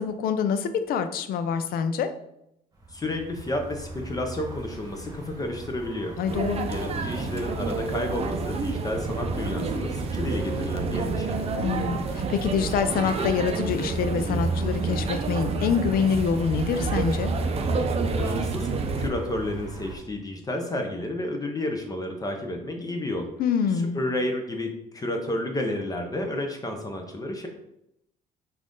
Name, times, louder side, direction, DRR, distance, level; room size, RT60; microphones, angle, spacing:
voice 1, 0.0-2.1 6.2-6.7 11.6-17.3 23.4-24.0, left 6 dB, 60° left, 10 dB, 0.5 m, -26 dB
sound 1, 2.7-20.0, right 2 dB, 20° right, 1.2 m, -41 dB
voice 2, 2.9-6.1 6.7-11.4 18.2-18.7 19.0-23.3 23.7-27.5, left 1 dB, 20° left, 3 dB, 0.7 m, -31 dB
sound 2, 6.3-19.1, right 3 dB, 35° right, 0.6 m, -28 dB
5.5 x 2.6 x 3.7 m, 0.80 s
cardioid pair, 110°, 17 cm